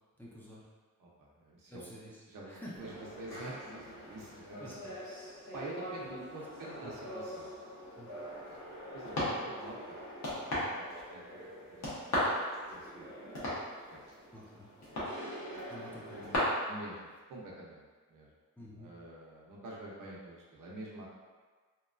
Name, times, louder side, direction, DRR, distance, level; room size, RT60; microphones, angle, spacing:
voice 1, 0.2-0.6 1.7-2.7 4.6-4.9 6.0-6.2 6.5-6.9 7.9-8.1 14.3-14.7 15.7-16.5 18.6-18.9, equal, 5° left, -7 dB, 0.4 m, -49 dB
voice 2, 1.0-1.9 2.3-5.0 5.5-7.5 8.3-8.6 8.9-10.0 10.5-12.3 12.7-13.1 13.9-14.0 14.9-15.0 16.7-18.3 18.8-21.1, right 1 dB, 90° right, -4 dB, 0.7 m, -48 dB
sound 1, 2.8-16.4, left 1 dB, 60° left, 0.9 m, -40 dB
2.9 x 2.2 x 2.4 m, 1.4 s
wide cardioid pair, 145°, 31 cm